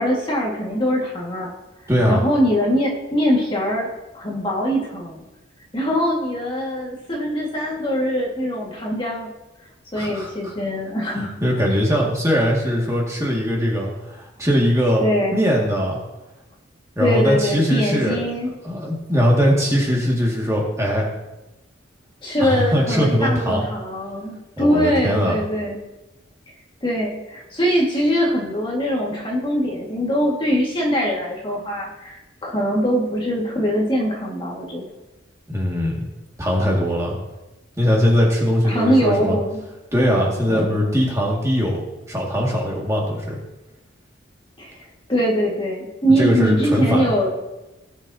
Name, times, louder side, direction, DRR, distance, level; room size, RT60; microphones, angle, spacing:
voice 1, 0.0-1.5 2.1-3.9 4.1-5.2 5.7-9.3 9.9-11.3 15.0-15.5 17.0-18.5 22.2-25.8 26.8-34.8 38.6-39.6 40.5-40.9 44.6-44.8 45.1-47.3, equal, 25° left, -2 dB, 1.8 m, -22 dB
voice 2, 1.9-2.2 10.0-10.5 11.1-15.0 15.3-16.0 17.0-18.2 18.6-21.0 22.4-23.6 24.6-25.4 35.5-36.1 36.4-37.2 37.8-39.4 39.9-41.8 42.1-43.4 46.2-47.0, equal, 15° right, -3 dB, 2.1 m, -20 dB
17.5 x 7.2 x 2.8 m, 1.0 s
head